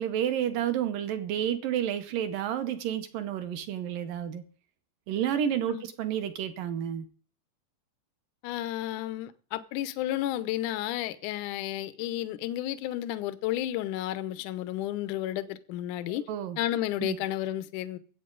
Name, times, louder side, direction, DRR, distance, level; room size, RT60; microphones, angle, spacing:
voice 1, 0.0-4.4 5.1-7.1 16.1-16.6 17.0-17.2, right 10 dB, 70° right, 2.2 m, -30 dB
voice 2, 8.4-16.2 16.6-18.0, left 13 dB, 85° left, 1.8 m, -32 dB
21.5 x 8.6 x 3.9 m
omnidirectional pair, 4.7 m